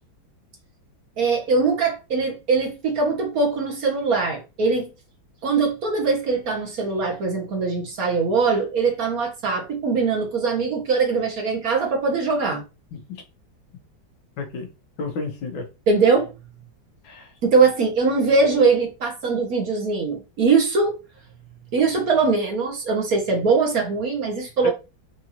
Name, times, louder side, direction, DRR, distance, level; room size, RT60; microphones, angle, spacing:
voice 1, 1.2-4.9 5.4-12.6 15.9-16.3 17.4-21.0 21.7-24.7, right 4 dB, 55° right, 1.3 m, -21 dB
voice 2, 12.9-13.2 14.4-14.7 15.0-15.7 17.0-17.3 24.6-24.7, left 2 dB, 80° left, 1.7 m, -31 dB
4.7 x 2.6 x 2.9 m
omnidirectional pair, 2.1 m